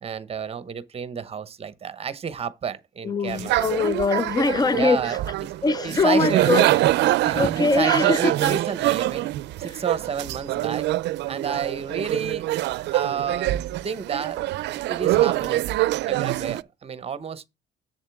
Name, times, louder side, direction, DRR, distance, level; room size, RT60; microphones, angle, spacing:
voice 1, 0.0-3.6 4.7-6.5 7.2-9.3 9.6-10.9 11.3-12.5 12.9-14.4 14.7-15.7 16.1-17.5, right 7 dB, 35° right, 0.9 m, -31 dB
voice 2, 3.0-5.0 5.6-6.7 7.1-8.5, left 4 dB, 20° left, 0.4 m, -23 dB
sound 1, 3.3-16.6, right 16 dB, 70° right, 0.4 m, -24 dB
7.7 x 7.3 x 3.5 m
cardioid pair, 120°, 18 cm